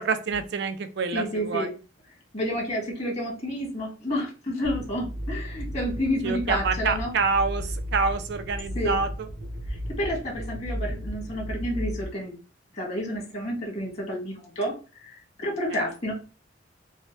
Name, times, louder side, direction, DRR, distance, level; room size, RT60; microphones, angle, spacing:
voice 1, 0.0-1.7 6.2-9.3 15.7-15.8, right 4 dB, 65° right, 9 dB, 0.5 m, -27 dB
voice 2, 1.1-1.7 2.3-7.1 8.8-9.0 10.0-12.3 12.7-14.7 15.0-15.1 15.4-16.1, equal, 35° left, -2 dB, 2.0 m, -30 dB
sound 1, 4.6-12.0, equal, 80° right, 0.9 m, -34 dB
5.4 x 2.2 x 3.2 m, 0.33 s
head